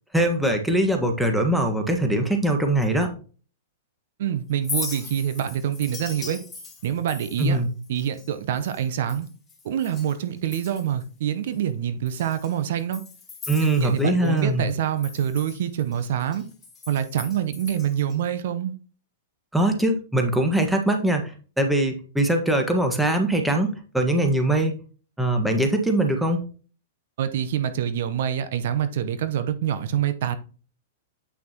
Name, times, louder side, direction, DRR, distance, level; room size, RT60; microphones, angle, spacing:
voice 1, 0.1-3.1 7.4-7.7 13.5-14.6 19.5-24.8 25.2-26.4, right 1 dB, 5° right, 1.5 m, -22 dB
voice 2, 4.2-6.4 6.8-7.6 7.9-9.3 9.6-13.0 13.6-16.4 16.9-18.7 27.2-30.4, right 9 dB, 60° right, 0.8 m, -26 dB
Chink clink, 4.5-10.2 10.4-11.0 11.5-11.6 12.1-14.4 14.7-18.2, left 4 dB, 15° left, 3.2 m, -39 dB
8.4 x 6.0 x 2.9 m
hypercardioid pair, 105°, 0 cm